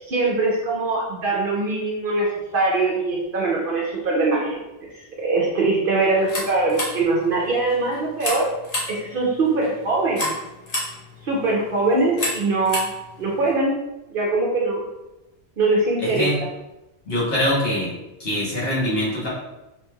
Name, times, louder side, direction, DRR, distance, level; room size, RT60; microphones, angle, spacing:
voice 1, 0.1-4.6 5.2-8.5 8.9-10.4 11.2-12.9 13.2-13.7 14.1-14.8 15.6-16.3, right 3 dB, 60° right, -3 dB, 0.7 m, -22 dB
sound 1, 6.1-13.6, left 1 dB, 40° left, 0.8 m, -32 dB
voice 2, 16.0-16.4 17.1-17.9 18.2-19.3, left 1 dB, 60° left, -6 dB, 1.2 m, -23 dB
3.1 x 3.0 x 2.2 m, 0.96 s
omnidirectional pair, 1.2 m